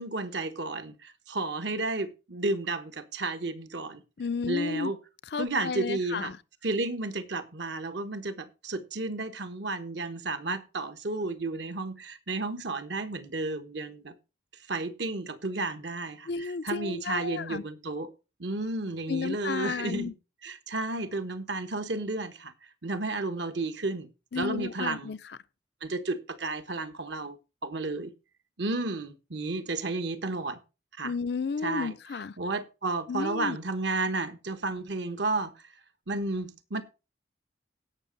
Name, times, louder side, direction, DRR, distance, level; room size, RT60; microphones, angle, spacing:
voice 1, 0.0-4.0 4.4-5.0 5.4-6.3 6.6-14.1 14.7-18.1 18.4-20.1 20.4-22.5 22.8-24.1 24.3-25.1 25.8-27.4 27.6-28.1 28.6-30.6 31.0-31.1 31.6-31.9 32.4-35.5 36.1-36.8, right 2 dB, 70° right, 1.2 m, -32 dB
voice 2, 4.2-4.9 5.3-6.4 16.3-17.6 19.1-20.1 24.3-25.2 31.0-32.4 33.1-33.6, left 5 dB, 60° left, 0.5 m, -32 dB
17.0 x 6.0 x 4.0 m
head